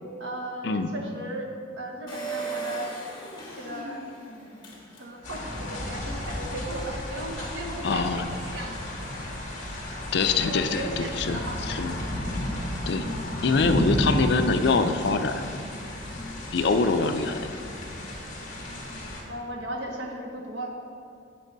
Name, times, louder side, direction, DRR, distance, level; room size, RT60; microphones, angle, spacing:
voice 1, 0.2-1.5 1.8-2.9 3.5-4.0 5.0-8.8 10.4-11.6 18.7-20.8, right 1 dB, 60° right, 0 dB, 1.0 m, -36 dB
Engine, 2.1-5.5 6.0-6.1 6.3-6.4, right 4 dB, 25° left, 1.9 m, -37 dB
sound 1, 5.2-19.2, left 1 dB, 40° left, 1.6 m, -32 dB
voice 2, 7.8-8.3 10.1-11.9 12.9-13.1 13.4-15.7 16.5-17.4, left 4 dB, 55° left, 8 dB, 0.4 m, -24 dB
8.1 x 7.5 x 4.0 m, 2.4 s
head